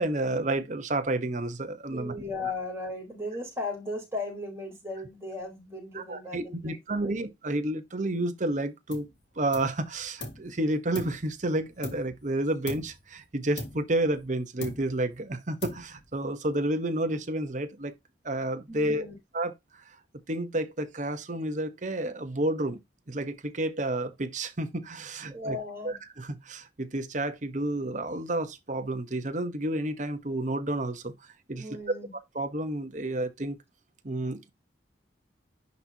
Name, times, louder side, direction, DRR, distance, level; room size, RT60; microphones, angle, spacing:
voice 1, 0.0-2.1 6.0-9.1 9.4-17.9 18.2-19.0 19.3-19.5 20.3-22.8 23.1-25.6 25.8-31.1 31.5-31.8 32.3-33.6 34.0-34.5, right 1 dB, 45° right, 1.1 m, -30 dB
voice 2, 1.9-7.2 18.7-19.1 25.3-26.0 31.6-32.1, left 2 dB, 15° right, 3.9 m, -36 dB
sound 1, 8.9-9.2 9.5-10.5 10.9-12.3 12.7-13.1 13.6-14.3 14.6-15.1 15.6-16.2, left 2 dB, 85° left, 2.1 m, -41 dB
10.5 x 4.1 x 2.8 m
head